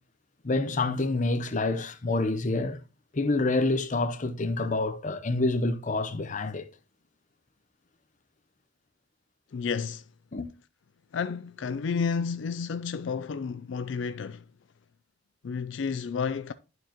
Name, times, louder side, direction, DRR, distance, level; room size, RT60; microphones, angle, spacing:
voice 1, 0.4-2.8 3.1-6.6 10.3-10.5, left 2 dB, 40° left, 0.7 m, -27 dB
voice 2, 9.5-10.0 11.1-14.4 15.4-16.5, left 5 dB, 70° left, 0.4 m, -31 dB
11.0 x 4.7 x 2.9 m
head